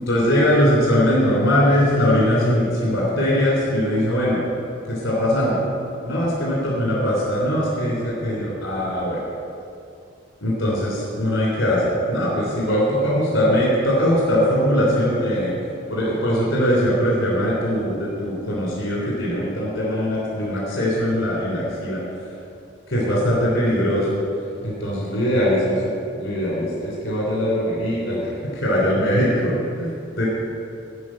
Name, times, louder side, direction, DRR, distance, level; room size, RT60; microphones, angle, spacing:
voice 1, 0.1-4.4 4.9-5.6 6.0-9.2 10.4-15.5 15.9-22.0 22.9-24.2 24.6-25.8 26.1-29.9 30.1-30.2, equal, 80° left, -6 dB, 3.2 m, -21 dB
12.5 x 5.6 x 8.6 m, 2.6 s
head